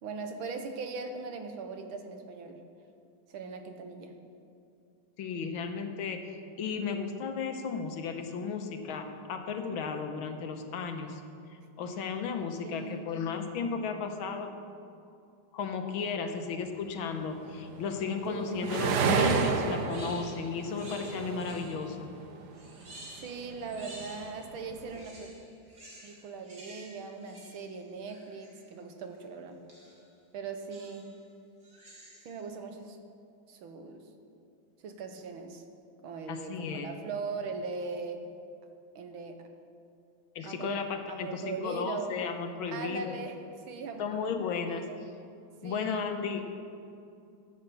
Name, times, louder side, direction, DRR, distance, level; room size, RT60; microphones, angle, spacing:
voice 1, 0.0-2.6 3.3-4.1 12.6-13.1 18.3-18.8 23.2-25.3 26.0-29.6 30.3-31.1 32.3-33.0 33.5-34.0 34.8-35.6 36.0-38.2 39.0-39.4 40.4-40.7 41.1-42.2 42.7-43.3 43.7-44.3 44.7-45.0 45.6-46.1, right 4 dB, 80° right, 6 dB, 1.9 m, -40 dB
voice 2, 5.2-6.2 6.6-11.2 11.8-14.5 15.5-22.1 36.3-36.9 40.3-43.1 44.0-44.9 45.6-46.4, left 5 dB, 80° left, 6 dB, 1.8 m, -34 dB
sound 1, 17.2-22.9 23.3-25.0, right 5 dB, 60° right, 1.3 m, -31 dB
sound 2, 18.6-22.0 22.5-24.5 24.8-28.7 29.7-30.1 30.7-31.2 31.6-32.4, right 1 dB, 45° right, 3.1 m, -50 dB
13.5 x 8.2 x 6.9 m, 2.5 s
omnidirectional pair, 2.2 m